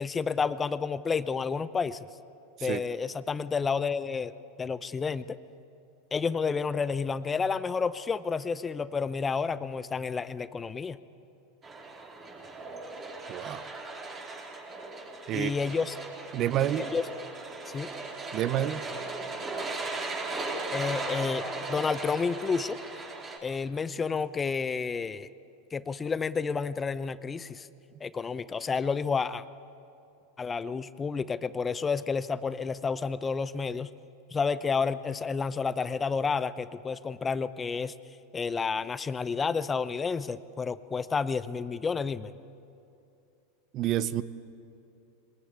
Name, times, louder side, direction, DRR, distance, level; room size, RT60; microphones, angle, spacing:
voice 1, 0.0-2.0 2.6-4.3 4.6-5.4 6.1-11.0 15.3-16.0 16.8-17.0 17.7-17.9 20.7-22.8 23.4-25.3 25.7-27.7 28.0-29.4 30.4-33.9 34.3-37.9 38.3-42.3, left 5 dB, 20° left, 15 dB, 0.7 m, -30 dB
sound 1, 11.6-23.4, right 3 dB, 25° right, 4.4 m, -37 dB
voice 2, 13.3-13.6 15.3-15.5 16.3-16.9 18.3-18.8 43.7-44.2, right 12 dB, 45° right, 15 dB, 0.9 m, -28 dB
22.0 x 20.0 x 8.5 m, 2.7 s
hypercardioid pair, 95°, 0 cm